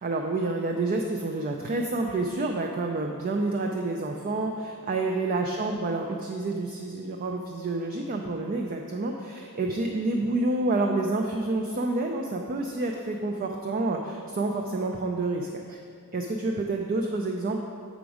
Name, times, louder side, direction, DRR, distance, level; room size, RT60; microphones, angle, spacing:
voice 1, 0.0-15.8 16.1-17.6, right 2 dB, 40° right, 2 dB, 0.4 m, -28 dB
6.9 x 5.1 x 4.8 m, 2.3 s
head